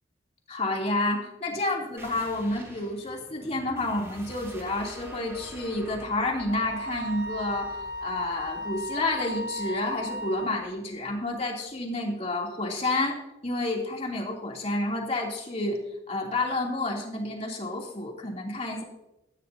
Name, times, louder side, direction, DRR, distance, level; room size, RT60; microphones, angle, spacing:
voice 1, 0.5-15.8 16.1-18.8, left 2 dB, 35° left, -1 dB, 3.0 m, -30 dB
sound 1, 2.0-11.2, right 1 dB, 15° right, 3.2 m, -47 dB
Wind instrument woodwind instrument, 6.5-10.7, equal, 60° right, 1.7 m, -35 dB
16.5 x 15.0 x 2.8 m, 0.89 s
head